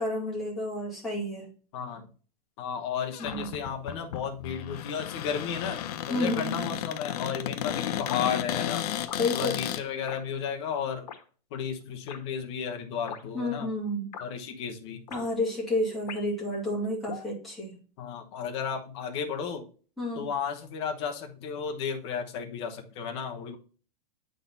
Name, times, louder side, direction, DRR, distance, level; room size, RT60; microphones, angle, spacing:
voice 1, 0.0-1.5 3.2-3.5 6.1-6.5 9.2-9.6 13.3-14.1 15.1-17.8 20.0-20.3, left 1 dB, ahead, -8 dB, 2.5 m, -30 dB
voice 2, 1.7-2.1 2.6-5.8 6.1-8.9 9.3-11.1 11.5-13.7 14.2-15.0 18.0-19.7 20.1-23.6, left 7 dB, 40° left, 2 dB, 1.1 m, -33 dB
Cupboard open or close, 3.1-9.8, left 11 dB, 70° left, 0.6 m, -33 dB
sound 1, 8.1-8.3 9.1-9.3 10.1-10.2 11.1-11.2 12.1-12.2 13.1-13.2 14.1-14.3 15.1-15.2 16.1-16.4 17.1-17.3, left 8 dB, 85° left, 1.4 m, -40 dB
8.2 x 4.0 x 4.0 m, 0.39 s
supercardioid pair, 175°, 21 cm